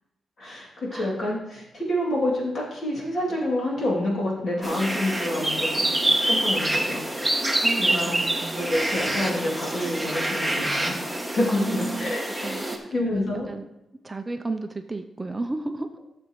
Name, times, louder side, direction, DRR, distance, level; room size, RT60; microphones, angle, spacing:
voice 1, 0.4-5.9 6.2-7.0 7.8-8.2 8.5-13.5, left 1 dB, 50° left, -4 dB, 2.7 m, -28 dB
sound 1, 4.6-12.8, right 1 dB, ahead, 1.0 m, -26 dB
voice 2, 7.6-8.7 11.5-12.2 12.4-13.7 14.0-15.9, right 3 dB, 20° right, 7 dB, 0.4 m, -33 dB
12.5 x 6.8 x 3.1 m, 0.89 s
wide cardioid pair, 135°, 0 cm